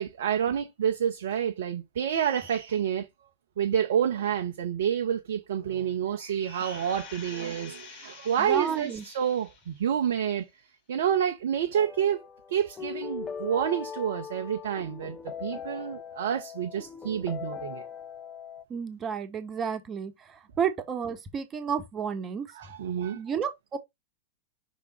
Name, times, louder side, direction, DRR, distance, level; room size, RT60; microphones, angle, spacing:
voice 1, 0.0-3.1 3.6-10.4 10.9-12.2 12.5-17.9 22.5-23.2, right 9 dB, 60° right, 0.8 m, -28 dB
sound 1, 6.4-9.8 10.3-10.4, left 6 dB, 45° left, 2.3 m, -47 dB
voice 2, 8.4-9.0 18.7-22.5 23.1-23.8, right 7 dB, 25° right, 1.3 m, -31 dB
sound 2, 11.7-18.6, left 7 dB, 20° left, 0.6 m, -40 dB
6.0 x 3.6 x 4.3 m
figure-of-eight pair, 90°, 0 cm